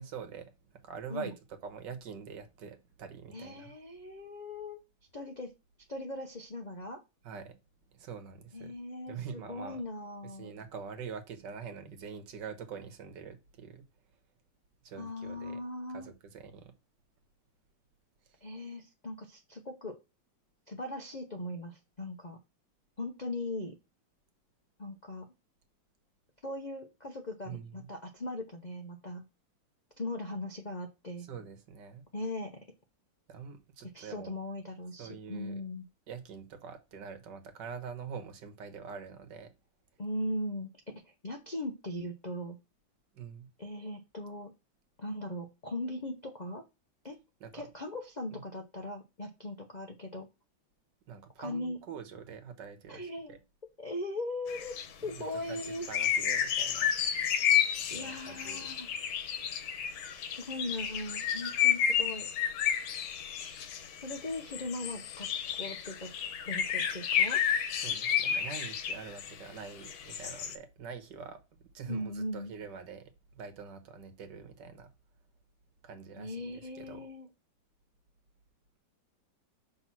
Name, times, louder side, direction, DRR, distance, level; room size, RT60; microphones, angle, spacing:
voice 1, 0.0-3.7 7.2-7.5 7.9-8.7 9.1-9.8 10.2-13.9 14.8-15.6 15.9-16.7 18.2-18.4 27.4-27.9 31.2-32.0 33.3-34.3 35.0-35.6 36.1-39.5 43.1-43.5 47.4-47.7 48.3-48.4 51.1-53.4 55.2-56.9 57.9-58.7 67.7-74.9 75.8-77.1, right 6 dB, 65° right, 1.7 m, -45 dB
voice 2, 3.3-4.8 5.1-5.5 5.9-7.0 8.5-10.5 15.0-16.1 18.4-20.0 20.7-22.4 23.0-23.8 24.8-25.3 26.4-29.3 30.0-31.3 32.1-32.6 33.8-35.9 40.0-40.7 41.0-42.6 43.6-44.5 45.0-46.6 47.0-47.2 47.5-50.3 51.4-51.8 52.9-53.4 53.8-55.9 57.9-58.9 60.4-62.3 64.0-65.3 65.6-66.2 66.4-67.4 71.9-72.5 76.2-77.3, left 1 dB, 60° left, 0.4 m, -39 dB
sound 1, 54.5-54.9 55.1-55.2 55.5-69.4 69.8-70.6, left 9 dB, 85° left, 1.6 m, -31 dB
5.7 x 3.8 x 6.0 m
omnidirectional pair, 2.1 m